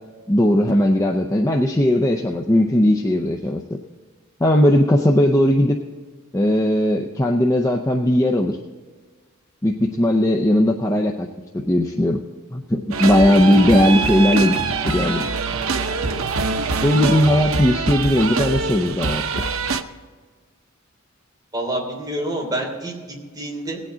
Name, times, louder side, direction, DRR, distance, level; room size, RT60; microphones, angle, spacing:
voice 1, 0.3-3.6 4.4-5.8 6.3-8.6 9.6-11.3 11.5-12.2 12.5-14.5 14.8-15.2 16.8-19.2, left 1 dB, 15° left, 2 dB, 0.6 m, -18 dB
sound 1, 12.8-17.6, right 1 dB, 45° right, 0.7 m, -37 dB
sound 2, 12.9-19.8, right 4 dB, 90° right, 0.8 m, -24 dB
voice 2, 21.5-23.8, right 1 dB, 20° right, -2 dB, 3.2 m, -27 dB
18.5 x 8.6 x 3.8 m, 1.5 s
head